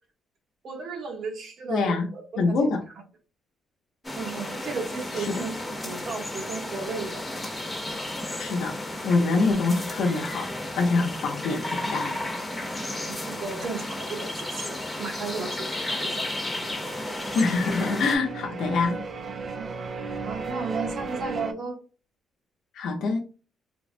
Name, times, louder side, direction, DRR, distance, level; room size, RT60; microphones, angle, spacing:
voice 1, 0.6-2.7 4.1-7.3 12.9-16.3 19.6-19.7 20.2-21.8, right 4 dB, 60° right, 2 dB, 0.9 m, -35 dB
voice 2, 1.7-2.1 2.4-2.8 5.1-5.3 8.4-8.8 9.0-12.2 17.3-19.0 22.7-23.2, left 3 dB, 75° left, -1 dB, 0.6 m, -25 dB
sound 1, 4.0-18.2, left 1 dB, 15° left, 0.9 m, -33 dB
sound 2, 16.2-21.5, right 4 dB, 45° right, 0.4 m, -36 dB
3.5 x 2.0 x 2.5 m, 0.34 s
cardioid pair, 90°, 0 cm